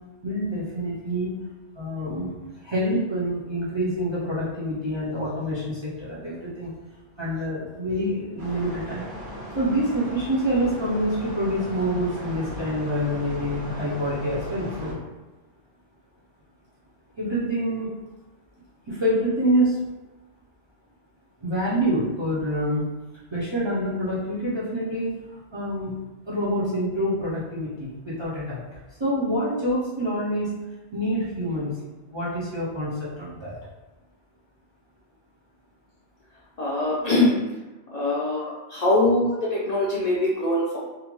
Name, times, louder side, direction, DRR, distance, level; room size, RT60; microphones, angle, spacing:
voice 1, 0.2-1.4 1.7-2.3 2.6-6.7 7.2-9.1 9.5-15.0 17.2-17.9 18.9-19.8 21.4-22.9 23.3-28.6 29.0-30.5 30.9-31.8 32.1-33.6, equal, 35° right, -9 dB, 0.5 m, -26 dB
sound 1, 8.4-14.9, equal, 80° right, 1.0 m, -37 dB
voice 2, 36.6-37.4 37.9-40.8, left 1 dB, 50° left, -6 dB, 0.5 m, -23 dB
2.5 x 2.1 x 3.0 m, 1.1 s
omnidirectional pair, 1.1 m